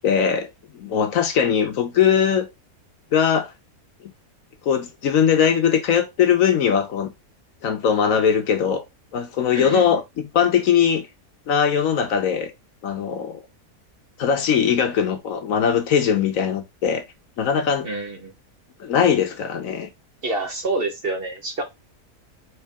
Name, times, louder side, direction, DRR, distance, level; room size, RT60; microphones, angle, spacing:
voice 1, 0.0-0.5 0.7-2.5 3.1-3.5 4.6-7.1 7.6-8.8 9.1-11.1 11.5-12.5 12.8-13.4 14.2-17.0 17.4-17.9 18.8-19.9, left 7 dB, 65° left, 1.1 m, -20 dB
voice 2, 9.5-10.0 17.8-18.3 20.2-21.6, right 2 dB, 45° right, 1.0 m, -27 dB
4.6 x 3.2 x 3.4 m
omnidirectional pair, 1.6 m